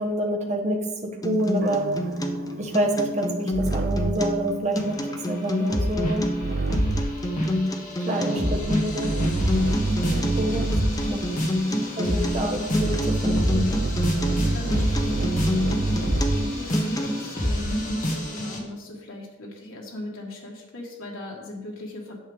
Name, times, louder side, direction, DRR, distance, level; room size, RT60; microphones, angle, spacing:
voice 1, 0.0-1.9 2.6-6.3 8.1-9.1 10.3-10.6 11.1-11.3 12.0-13.7, right 1 dB, 35° right, 0 dB, 1.2 m, -27 dB
Acoustic guitar, 1.2-17.2, equal, 15° left, 0.6 m, -29 dB
sound 1, 1.6-4.4 6.4-7.2 8.1-11.1 12.7-16.6, right 3 dB, 55° right, 0.5 m, -28 dB
sound 2, 4.8-6.4 6.7-18.6, equal, 40° left, 1.6 m, -28 dB
voice 2, 14.4-16.0 16.3-22.2, left 1 dB, 80° left, -2 dB, 1.5 m, -38 dB
9.5 x 7.0 x 3.6 m, 1.1 s
head